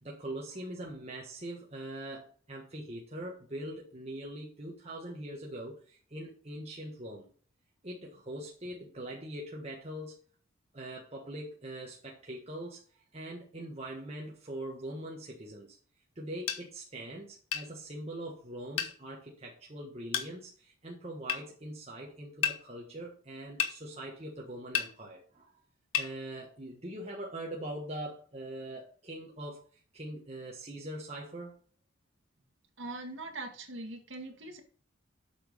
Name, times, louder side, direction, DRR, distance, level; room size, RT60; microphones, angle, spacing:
voice 1, 0.0-7.3 7.8-10.2 10.7-12.8 13.1-15.8 16.1-25.6 26.0-29.6 29.9-31.5, right 1 dB, 30° right, -2 dB, 1.6 m, -42 dB
sound 1, 16.5-16.6 17.5-17.7 18.8-19.0 20.1-20.3 21.3-21.4 22.4-22.6 23.6-23.8 24.7-24.9 25.9-26.1, left 8 dB, 85° left, 1.2 m, -30 dB
voice 2, 32.8-34.6, right 2 dB, 70° right, 4 dB, 1.9 m, -41 dB
8.1 x 6.2 x 5.2 m, 0.43 s
head